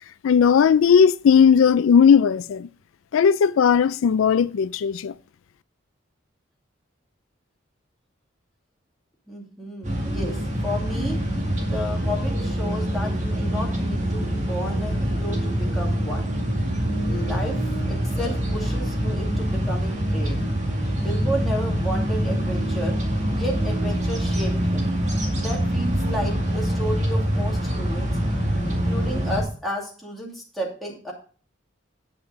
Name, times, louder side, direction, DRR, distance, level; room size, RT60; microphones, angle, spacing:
voice 1, 0.2-2.7 3.1-5.1, left 7 dB, 85° left, 0.4 m, -17 dB
voice 2, 9.3-11.2 11.7-16.3 17.0-20.4 21.0-23.0 23.3-24.9 25.3-28.2 28.6-31.1, equal, ahead, 2.5 m, -32 dB
sound 1, 9.8-29.4, equal, 35° right, 2.1 m, -25 dB
9.0 x 5.9 x 5.1 m
head